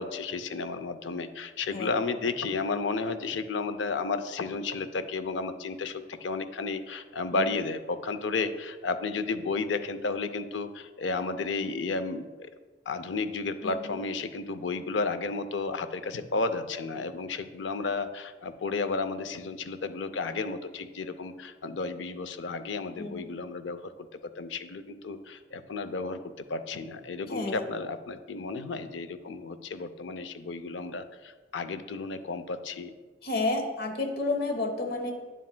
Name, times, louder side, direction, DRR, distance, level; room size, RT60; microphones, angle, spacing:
voice 1, 0.0-12.5 12.9-23.9 24.4-26.2 26.5-32.9, left 3 dB, 85° left, 11 dB, 0.5 m, -32 dB
voice 2, 13.6-14.0 23.0-23.4 27.3-27.6 33.2-35.1, left 2 dB, 55° left, 4 dB, 1.0 m, -31 dB
9.3 x 7.4 x 2.2 m, 1.3 s
head